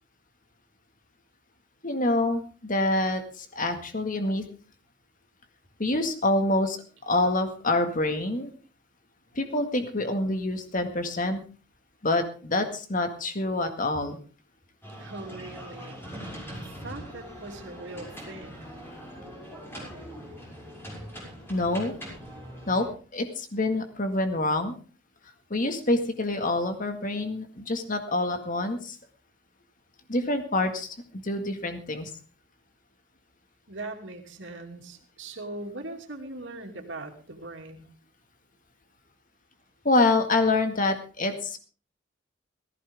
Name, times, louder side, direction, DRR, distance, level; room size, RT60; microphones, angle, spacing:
voice 1, 1.8-4.4 5.8-6.8 7.1-8.5 9.3-11.4 12.0-14.2 21.5-22.0 22.7-22.9 23.1-24.8 25.5-29.0 30.1-32.1 39.8-41.6, left 2 dB, 45° left, 7 dB, 1.9 m, -26 dB
sound 1, 14.8-22.9, equal, 10° left, 6.4 m, -42 dB
voice 2, 15.0-16.0 16.5-18.7 33.7-37.9, right 2 dB, 70° right, 3 dB, 2.8 m, -40 dB
17.5 x 15.5 x 3.6 m, 0.36 s
head